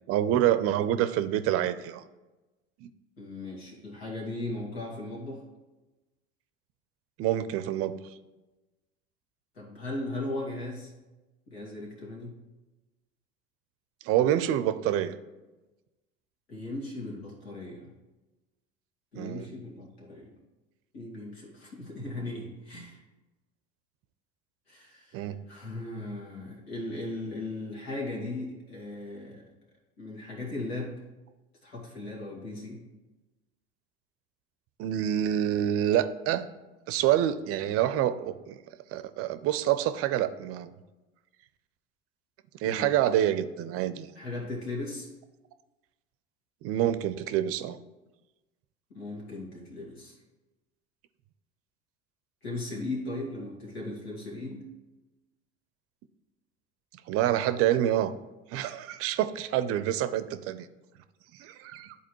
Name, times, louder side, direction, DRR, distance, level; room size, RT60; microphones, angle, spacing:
voice 1, 0.1-2.0 2.8-2.9 7.2-8.0 14.0-15.1 19.2-19.5 25.1-25.4 34.8-36.4 36.9-38.6 38.9-40.8 42.6-44.1 46.6-47.8 57.1-58.1 58.5-60.7 61.3-62.0, right 11 dB, 50° right, 12 dB, 0.5 m, -27 dB
voice 2, 3.2-5.4 9.6-10.9 11.5-12.3 16.5-17.9 19.1-20.3 20.9-23.0 24.7-29.4 30.0-31.0 31.6-32.8 42.6-42.9 44.2-45.1 48.9-50.2 52.4-54.6, left 2 dB, 85° left, -3 dB, 2.2 m, -37 dB
11.0 x 4.0 x 3.1 m, 1.1 s
hypercardioid pair, 75°, 30 cm